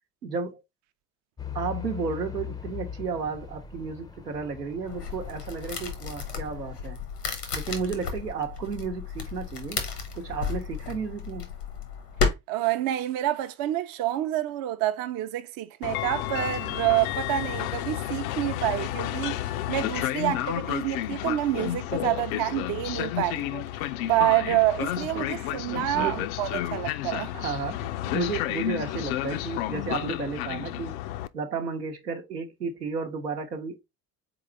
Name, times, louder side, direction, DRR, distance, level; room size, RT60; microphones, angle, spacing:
voice 1, 0.2-0.6 1.5-7.0 7.5-9.8 10.1-11.5 25.0-26.3 27.3-31.0 31.3-33.8, right 5 dB, 90° right, 0.9 m, -33 dB
Truck / Idling, 1.4-6.9, left 8 dB, 10° left, 0.5 m, -40 dB
sound 1, 4.8-12.3, left 5 dB, 85° left, 1.1 m, -33 dB
voice 2, 12.5-19.4 19.7-23.7 24.1-27.3, right 14 dB, 50° right, 0.6 m, -27 dB
Train, 15.8-31.3, left 14 dB, 60° left, 0.5 m, -31 dB
4.0 x 3.9 x 3.1 m
figure-of-eight pair, 60°, 47 cm